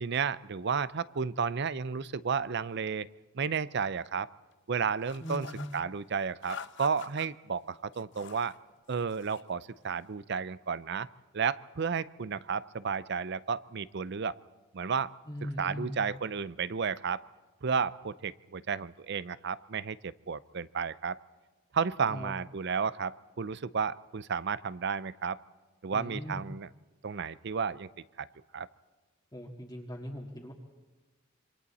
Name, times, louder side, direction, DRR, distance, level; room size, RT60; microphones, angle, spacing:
voice 1, 0.0-3.1 3.3-4.3 4.7-5.5 5.7-8.5 8.9-11.1 11.3-14.4 14.7-15.1 15.6-17.2 17.6-21.2 21.7-25.4 25.8-26.7 27.0-27.9 28.2-28.3 28.5-28.7, right 6 dB, 55° right, 18 dB, 0.6 m, -32 dB
sound 1, 5.0-5.8 6.4-7.3 7.9-8.6 8.9-9.5, left 6 dB, 60° left, 0.8 m, -46 dB
voice 2, 5.2-5.7 15.3-16.1 22.1-22.4 25.9-26.4 29.3-30.5, equal, 20° left, -3 dB, 1.7 m, -39 dB
27.0 x 25.0 x 4.2 m, 1.3 s
head